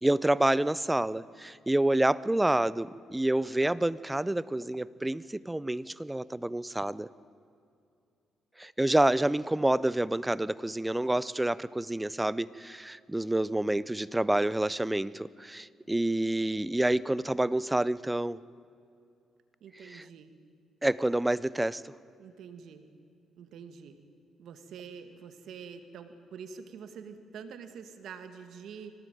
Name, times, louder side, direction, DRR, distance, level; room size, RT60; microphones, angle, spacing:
voice 1, 0.0-7.1 8.6-18.4 19.8-20.0 20.8-21.9, right 1 dB, 10° right, 19 dB, 0.6 m, -28 dB
voice 2, 19.6-20.3 22.2-22.9 23.4-24.0 24.4-28.9, right 6 dB, 70° right, 8 dB, 1.9 m, -46 dB
24.0 x 18.0 x 9.3 m, 2.5 s
cardioid pair, 90°, 0 cm